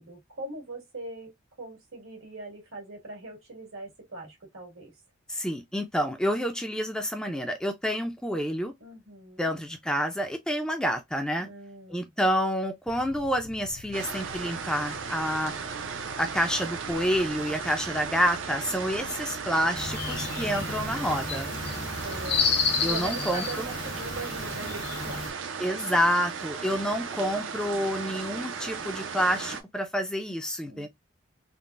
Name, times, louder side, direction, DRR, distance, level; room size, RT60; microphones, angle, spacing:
voice 1, 0.0-1.3 1.6-4.9 8.8-9.5 11.4-12.1 21.5-22.4 22.9-25.5 30.7-30.9, right 2 dB, 85° right, 1.7 m, -41 dB
voice 2, 5.3-8.7 9.4-11.5 11.9-15.5 15.8-21.5 22.8-23.4 25.6-30.9, equal, 5° left, 0.4 m, -28 dB
sound 1, 12.9-20.9, left 4 dB, 70° left, 0.5 m, -48 dB
sound 2, 13.9-29.6, right 6 dB, 70° right, 0.5 m, -36 dB
sound 3, 19.7-25.3, left 5 dB, 55° left, 0.8 m, -31 dB
3.7 x 2.0 x 2.4 m
head